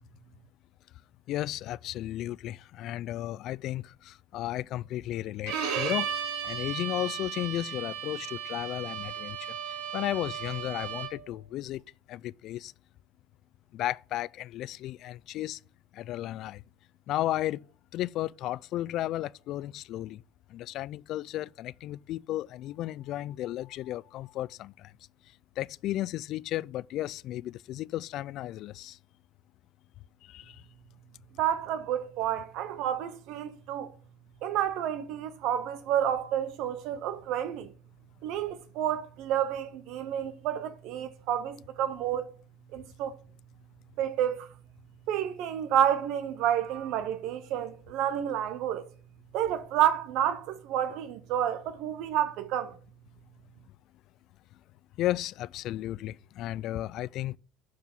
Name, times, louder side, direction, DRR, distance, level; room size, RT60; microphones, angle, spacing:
voice 1, 1.3-11.8 12.1-12.7 13.7-15.6 15.9-16.6 17.1-17.7 17.9-20.2 20.5-24.9 25.6-29.0 30.2-30.6 55.0-57.4, left 14 dB, 60° left, 0.3 m, -34 dB
Bowed string instrument, 5.5-11.3, right 8 dB, 90° right, 2.1 m, -35 dB
voice 2, 31.4-33.9 34.4-37.7 38.2-42.3 42.7-43.2 44.0-44.5 45.1-48.9 49.3-52.8, right 10 dB, 70° right, 0.7 m, -30 dB
11.5 x 4.8 x 5.3 m
cardioid pair, 115°, 0 cm